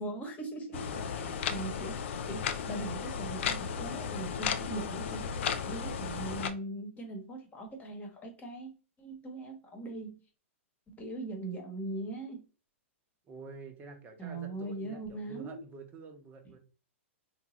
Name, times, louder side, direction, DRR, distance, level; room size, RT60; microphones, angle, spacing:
voice 1, 0.0-0.8 1.2-5.2 5.6-8.7 9.0-10.2 10.9-12.4 14.2-15.6, right 2 dB, 20° left, 1.2 m, -40 dB
sound 1, 0.7-6.5, left 7 dB, 60° left, 0.5 m, -35 dB
voice 2, 0.8-1.5 13.3-16.6, right 4 dB, 25° right, 0.9 m, -48 dB
3.8 x 2.4 x 2.9 m
hypercardioid pair, 115°, 7 cm